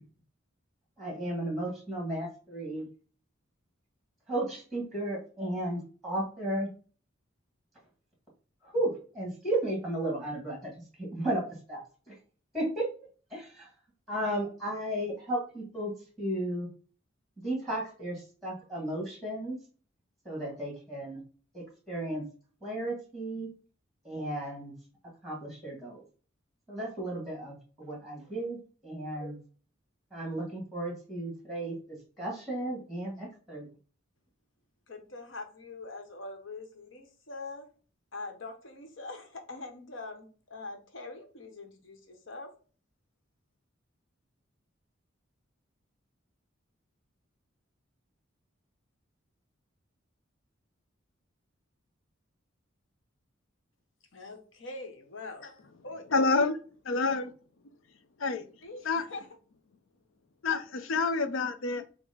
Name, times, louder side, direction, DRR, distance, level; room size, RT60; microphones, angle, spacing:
voice 1, 1.0-2.9 4.3-6.7 8.6-10.7 11.0-11.4 11.7-12.1 12.5-12.9 13.3-13.7 14.1-16.7 17.4-19.6 20.2-21.2 21.5-22.2 22.6-23.5 24.0-24.7 25.2-26.0 26.7-29.4 30.1-33.7, right 1 dB, ahead, -1 dB, 1.5 m, -34 dB
voice 2, 34.9-37.7 38.1-42.5 54.1-56.2 58.6-59.3, left 3 dB, 65° left, 5 dB, 1.0 m, -43 dB
voice 3, 56.1-56.6 56.8-57.3 58.2-58.4 58.8-59.1 60.4-61.8, left 3 dB, 85° left, 10 dB, 0.6 m, -27 dB
5.1 x 2.1 x 4.8 m, 0.40 s
head